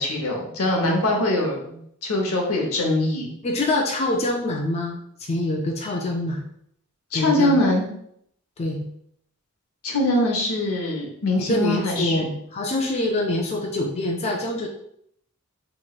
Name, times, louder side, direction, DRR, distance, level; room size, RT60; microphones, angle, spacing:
voice 1, 0.0-3.3 7.1-7.9 9.8-12.2, left 1 dB, 80° left, 1 dB, 0.8 m, -23 dB
voice 2, 3.4-6.5 7.1-7.6 8.6-8.8 11.5-14.7, left 1 dB, 30° left, 1 dB, 0.3 m, -25 dB
3.0 x 3.0 x 2.3 m, 0.70 s
head